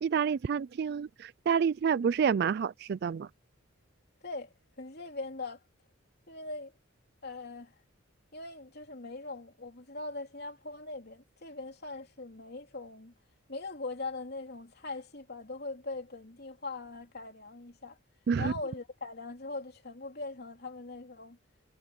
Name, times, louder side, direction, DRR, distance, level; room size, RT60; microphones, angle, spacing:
voice 1, 0.0-3.3 18.3-18.5, right 6 dB, 55° right, 0.3 m, -28 dB
voice 2, 4.8-5.6 6.3-6.7 7.2-7.7 8.3-13.1 13.5-18.0 18.4-21.4, left 3 dB, 55° left, 3.3 m, -41 dB
head